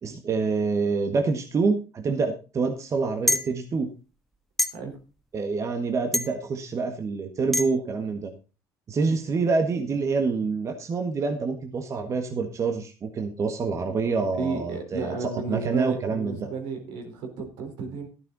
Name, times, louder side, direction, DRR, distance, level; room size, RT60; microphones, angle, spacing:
voice 1, 0.0-3.9 5.3-8.3 8.9-16.5, right 4 dB, 40° right, 5 dB, 1.6 m, -27 dB
sound 1, 3.3-3.5 4.6-4.7 6.1-6.3 7.5-7.6, left 1 dB, 5° left, 1.5 m, -23 dB
voice 2, 14.3-18.1, right 4 dB, 75° right, 4 dB, 4.2 m, -33 dB
12.5 x 10.5 x 4.1 m, 0.32 s
supercardioid pair, 90°, 8 cm